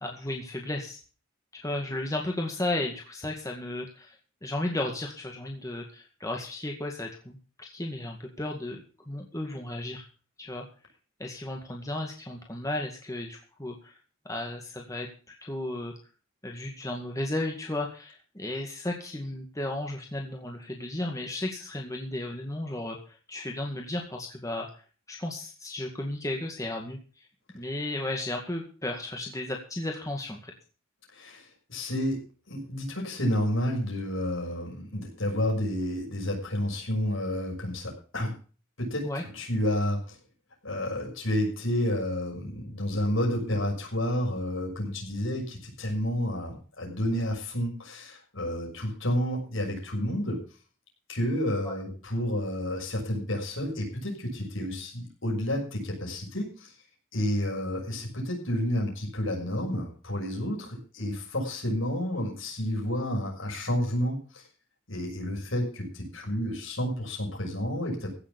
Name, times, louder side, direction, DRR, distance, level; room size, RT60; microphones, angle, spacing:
voice 1, 0.0-1.0 1.5-10.0 10.4-10.7 11.2-14.0 14.3-15.9 16.4-24.7 25.1-27.2 27.5-30.5 39.0-39.2 51.6-51.8, left 1 dB, 15° left, 1 dB, 2.1 m, -34 dB
voice 2, 31.1-32.2 32.5-38.3 38.8-40.2 40.6-50.4 51.1-56.7 57.1-64.4 64.9-68.1, left 1 dB, 70° left, 0 dB, 6.6 m, -30 dB
16.0 x 7.3 x 7.0 m, 0.38 s
head